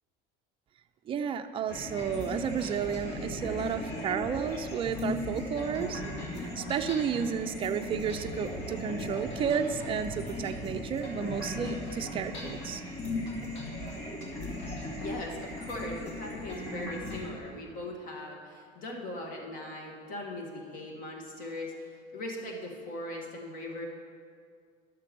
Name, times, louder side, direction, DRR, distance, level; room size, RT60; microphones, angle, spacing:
voice 1, 1.1-6.0 6.4-12.8, right 7 dB, 30° right, 6 dB, 0.4 m, -32 dB
sound 1, 1.7-17.3, left 1 dB, 60° left, 2.2 m, -37 dB
voice 2, 15.0-23.9, left 1 dB, 45° left, 0 dB, 1.6 m, -39 dB
12.0 x 6.7 x 5.2 m, 2.2 s
cardioid pair, 140°, 19 cm